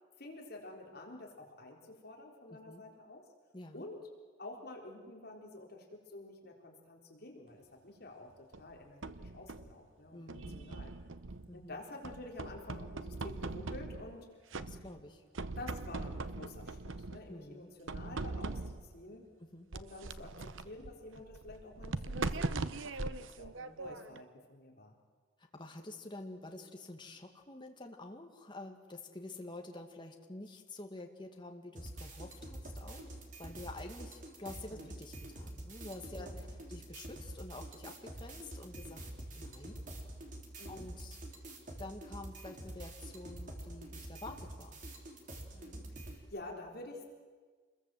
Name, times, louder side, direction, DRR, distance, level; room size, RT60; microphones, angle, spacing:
voice 1, 0.2-3.2 3.7-4.1 4.4-10.9 11.5-14.3 15.6-19.3 19.7-24.9 34.7-34.8 36.2-36.4 40.6-40.9 45.5-47.0, left 2 dB, 50° left, 0 dB, 4.1 m, -49 dB
voice 2, 2.5-2.8 3.5-3.9 10.1-10.7 11.5-11.8 14.6-15.2 17.3-17.7 19.4-19.7 25.4-39.0 39.4-39.9 40.7-41.2 41.8-44.8, left 2 dB, 25° left, 3 dB, 2.1 m, -48 dB
sound 1, 8.5-9.8 10.3-11.6 12.0-14.2 14.5-15.1 15.3-17.3 17.9-19.0 19.7-24.2, right 3 dB, 75° right, 0.9 m, -41 dB
sound 2, 31.7-46.2, right 1 dB, 40° right, 3.5 m, -47 dB
28.0 x 21.5 x 7.8 m, 1.5 s
head